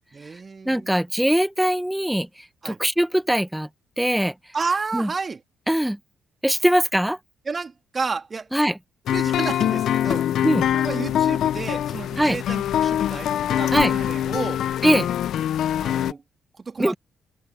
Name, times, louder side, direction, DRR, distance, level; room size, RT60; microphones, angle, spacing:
voice 1, 0.1-1.0 2.6-2.8 4.5-5.4 7.5-8.5 9.1-10.3 10.7-14.6 15.8-16.2 16.6-17.0, right 4 dB, 40° right, 2.7 m, -31 dB
voice 2, 0.6-2.3 2.6-3.7 4.0-4.3 4.9-5.1 5.7-6.0 6.4-7.2 8.5-8.8 10.4-10.7 12.2-12.4 13.7-13.9 14.8-15.1 16.8-16.9, equal, 5° right, 1.4 m, -21 dB
sound 1, 9.1-16.1, left 11 dB, 65° left, 0.7 m, -23 dB
hypercardioid pair, 45°, 0 cm